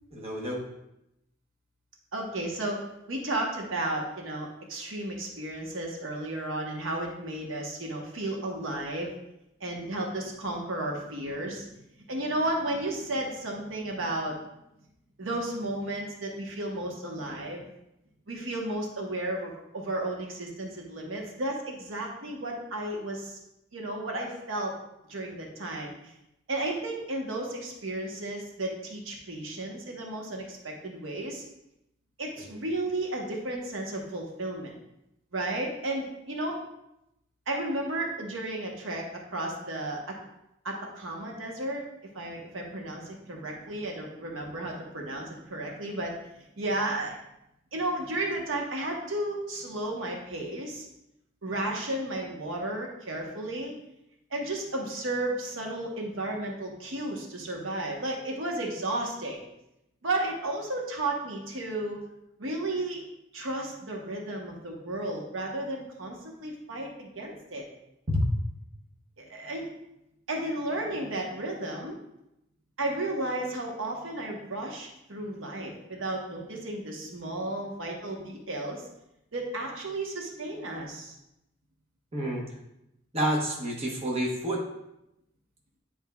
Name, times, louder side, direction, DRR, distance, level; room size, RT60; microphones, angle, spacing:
voice 1, 0.1-0.6 32.5-32.6 68.1-68.2 82.1-82.4 83.1-84.6, equal, 30° right, -2 dB, 1.0 m, -29 dB
voice 2, 2.1-2.8 3.1-9.1 9.6-11.7 12.1-14.5 15.2-17.7 18.3-23.4 23.7-24.7 25.1-26.1 26.5-31.4 32.2-34.7 35.3-36.6 37.5-39.1 39.3-40.2 40.6-41.8 42.1-46.1 46.6-47.2 47.7-50.9 51.4-53.7 54.3-59.4 60.0-62.0 62.4-63.0 63.3-67.6 69.2-69.7 70.3-72.0 72.8-78.8 79.3-81.1, right 1 dB, 70° right, 0 dB, 1.0 m, -33 dB
9.4 x 4.4 x 2.3 m, 0.85 s
head